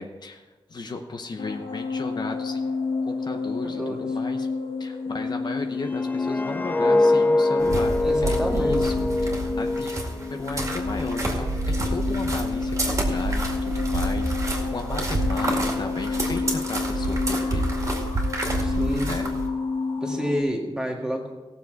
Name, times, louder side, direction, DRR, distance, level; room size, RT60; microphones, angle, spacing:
voice 1, 0.0-2.8 3.0-4.5 4.8-17.6 19.0-19.3, left 3 dB, 50° left, 4 dB, 0.8 m, -35 dB
sound 1, 1.4-20.4, left 4 dB, 75° left, 1.7 m, -30 dB
voice 2, 3.6-4.1 8.0-8.9 18.6-19.4 20.0-21.3, equal, 10° right, -1 dB, 1.9 m, -29 dB
sound 2, 5.8-10.9 11.2-11.5, left 2 dB, 20° left, 0.3 m, -24 dB
sound 3, 7.6-19.5, right 1 dB, 35° right, 2.2 m, -28 dB
18.5 x 7.2 x 4.6 m, 1.2 s
wide cardioid pair, 175°, 9 cm